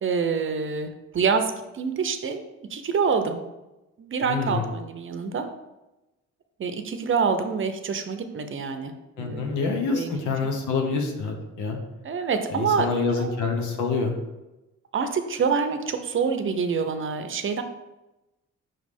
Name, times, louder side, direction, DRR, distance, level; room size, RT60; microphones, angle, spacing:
voice 1, 0.0-2.4 2.7-3.4 4.0-5.5 6.6-8.9 9.2-9.6 9.9-10.3 12.0-13.4 14.9-17.6, right 5 dB, 45° right, 8 dB, 0.7 m, -26 dB
voice 2, 4.2-4.7 9.2-11.8 12.5-14.1, left 4 dB, 85° left, 3 dB, 1.1 m, -26 dB
5.7 x 3.2 x 5.3 m, 1.0 s
cardioid pair, 90°, 30 cm